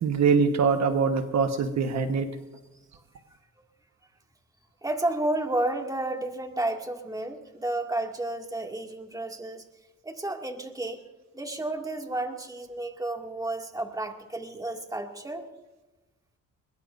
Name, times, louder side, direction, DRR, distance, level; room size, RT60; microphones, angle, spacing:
voice 1, 0.0-2.3, right 5 dB, 65° right, 6 dB, 1.4 m, -23 dB
voice 2, 4.8-9.7 10.0-11.0 11.3-15.4, right 2 dB, 10° right, 2 dB, 2.3 m, -31 dB
22.0 x 21.5 x 2.6 m, 1.1 s
cardioid pair, 90°, 30 cm